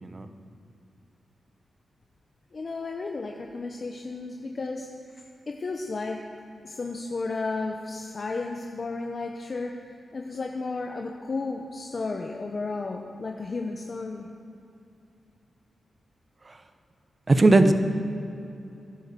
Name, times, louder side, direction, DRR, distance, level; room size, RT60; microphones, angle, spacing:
voice 1, 2.5-4.9 5.1-6.2 6.6-9.7 10.1-14.3, left 3 dB, 45° left, 2 dB, 1.0 m, -33 dB
voice 2, 17.3-17.7, right 2 dB, 35° right, 8 dB, 1.1 m, -18 dB
15.5 x 11.0 x 7.0 m, 2.7 s
cardioid pair, 90°, 0 cm